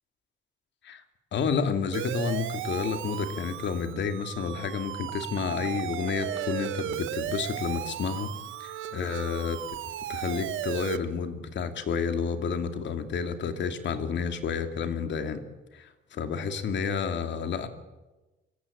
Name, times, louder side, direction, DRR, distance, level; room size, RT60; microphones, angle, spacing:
voice 1, 1.3-8.3 8.6-9.6 10.1-15.4 15.7-17.7, left 6 dB, 65° left, 7 dB, 2.5 m, -30 dB
Siren, 1.9-11.0, right 12 dB, 85° right, 1.1 m, -35 dB
25.0 x 15.0 x 8.6 m, 1.1 s
cardioid pair, 90°, 20 cm